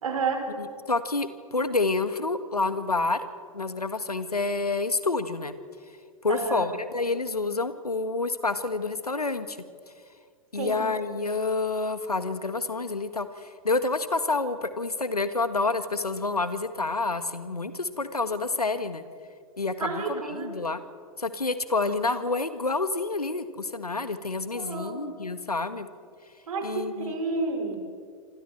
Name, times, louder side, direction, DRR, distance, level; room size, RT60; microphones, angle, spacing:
voice 1, 0.0-0.4 6.3-6.7 10.6-10.8 19.8-20.5 24.6-25.0 26.5-27.8, right 4 dB, 65° right, 3 dB, 5.3 m, -30 dB
voice 2, 0.6-3.2 3.5-5.5 6.2-9.6 10.5-19.0 19.6-20.8 21.2-25.9 26.6-27.1, left 3 dB, 85° left, 12 dB, 1.5 m, -28 dB
26.5 x 26.0 x 4.5 m, 2.1 s
figure-of-eight pair, 100°, 19 cm